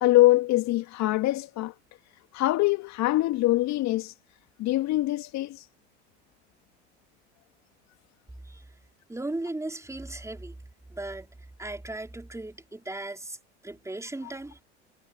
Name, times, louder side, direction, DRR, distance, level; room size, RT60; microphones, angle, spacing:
voice 1, 0.0-1.7 2.3-4.1 4.6-5.7, left 17 dB, 50° left, 2.0 m, -23 dB
voice 2, 9.1-10.5 10.9-11.3 11.6-13.4 13.6-14.6, right 2 dB, 10° right, 4.7 m, -36 dB
hypercardioid pair, 75°, 35 cm